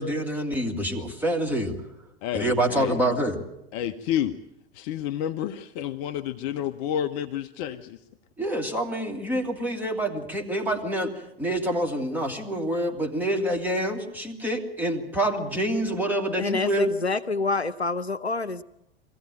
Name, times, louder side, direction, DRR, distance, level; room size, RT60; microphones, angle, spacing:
voice 1, 0.0-1.8 2.3-3.4 8.4-11.1 11.4-16.9, right 1 dB, 5° right, 1 dB, 2.8 m, -27 dB
voice 2, 2.2-3.0 3.7-4.3 4.7-8.0, left 10 dB, 40° left, 8 dB, 0.8 m, -30 dB
voice 3, 16.4-18.6, left 3 dB, 90° left, 12 dB, 0.7 m, -27 dB
22.0 x 15.5 x 9.0 m, 0.85 s
figure-of-eight pair, 90°, 32 cm